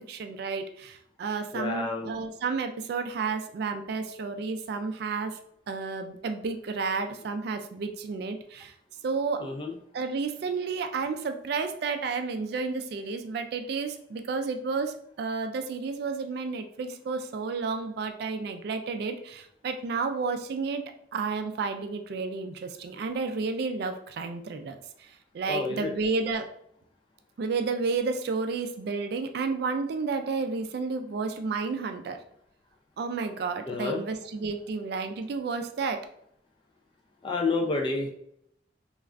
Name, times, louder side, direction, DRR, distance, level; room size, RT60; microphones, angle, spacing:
voice 1, 0.0-5.4 5.7-8.7 9.0-9.5 9.9-20.8 21.1-26.5 27.4-32.2 33.0-36.1, right 4 dB, 60° right, 7 dB, 0.3 m, -31 dB
voice 2, 1.5-2.1 9.4-9.7 25.5-25.9 33.7-34.0 37.2-38.1, left 3 dB, 25° left, 1 dB, 0.3 m, -29 dB
3.2 x 2.4 x 2.4 m, 0.71 s
head